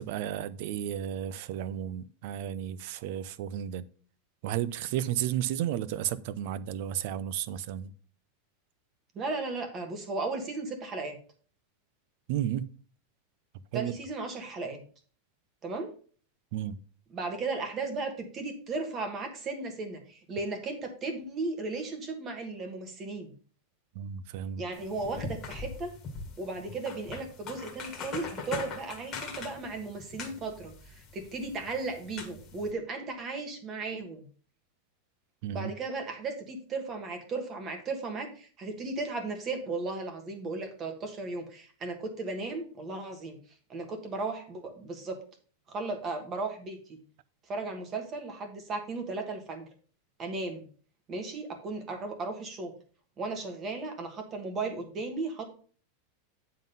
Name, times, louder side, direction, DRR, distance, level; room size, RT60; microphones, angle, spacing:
voice 1, 0.0-3.8 4.4-7.9 12.3-12.7 13.7-13.9 16.5-16.8 23.9-24.6 35.4-35.7, right 11 dB, 45° right, 0.5 m, -33 dB
voice 2, 9.1-11.2 13.7-14.8 15.6-15.9 17.1-23.3 24.6-25.9 26.4-34.2 35.5-43.4 43.7-45.2 45.7-47.0 47.5-49.7 50.2-50.7 51.1-52.7 53.2-55.4, right 3 dB, 20° right, 1.4 m, -35 dB
sound 1, 24.7-32.7, left 5 dB, 20° left, 1.6 m, -42 dB
9.3 x 3.8 x 5.4 m
supercardioid pair, 175°, 0 cm